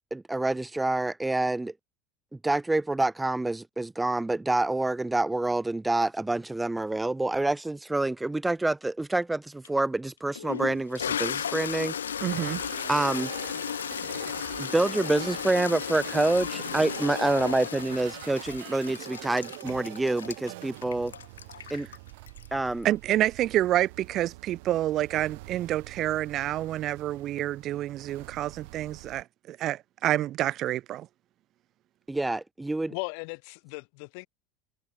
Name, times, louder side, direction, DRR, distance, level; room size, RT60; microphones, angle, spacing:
voice 1, 0.0-1.7 2.4-11.9 12.9-13.3 14.6-21.1 21.7-21.9 22.5-22.9 32.1-32.9, right 2 dB, 10° right, 0.7 m, -27 dB
Toilet flush, 9.6-9.7 10.4-22.8, left 8 dB, 75° left, 2.1 m, -35 dB
voice 2, 12.2-12.6 22.8-31.1, right 13 dB, 45° right, 1.2 m, -28 dB
sound 1, 12.3-29.2, right 24 dB, 60° right, 4.6 m, -44 dB
voice 3, 32.9-34.3, left 40 dB or more, 55° left, 6.8 m, -37 dB
figure-of-eight pair, 75°, 0 cm